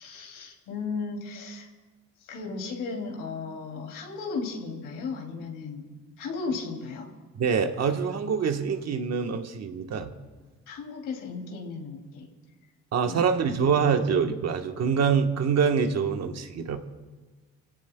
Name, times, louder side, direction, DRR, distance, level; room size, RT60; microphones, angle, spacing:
voice 1, 0.0-1.7 2.2-5.9 6.2-7.1 10.7-12.3 13.0-13.8, left 4 dB, 90° left, 0 dB, 2.8 m, -35 dB
voice 2, 7.3-10.1 12.9-16.8, right 6 dB, 60° right, 6 dB, 1.3 m, -25 dB
29.5 x 16.5 x 2.3 m, 1.3 s
cardioid pair, 90°, 30 cm